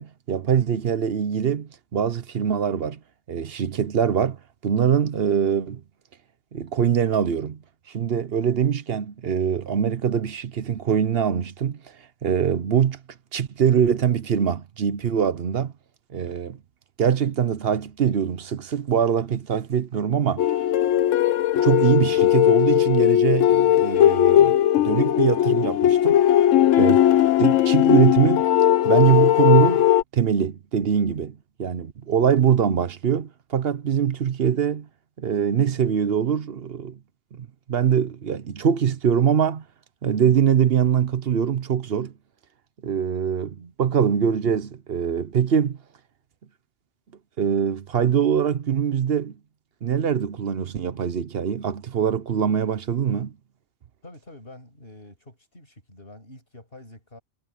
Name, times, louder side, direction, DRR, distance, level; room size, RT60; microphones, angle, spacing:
voice 1, 0.0-3.0 3.3-4.4 4.6-5.8 6.5-7.6 7.9-11.8 12.2-13.0 13.3-15.7 16.1-16.6 17.0-20.4 21.5-26.2 26.8-27.0 27.4-28.5 28.8-34.9 35.2-37.0 37.3-39.6 40.0-42.1 42.8-45.8 47.4-49.3 49.8-53.3, right 8 dB, 55° right, 1.0 m, -23 dB
sound 1, 20.4-30.0, left 12 dB, 80° left, 1.0 m, -18 dB
voice 2, 54.0-57.2, left 1 dB, 50° left, 6.9 m, -46 dB
omnidirectional pair, 1.3 m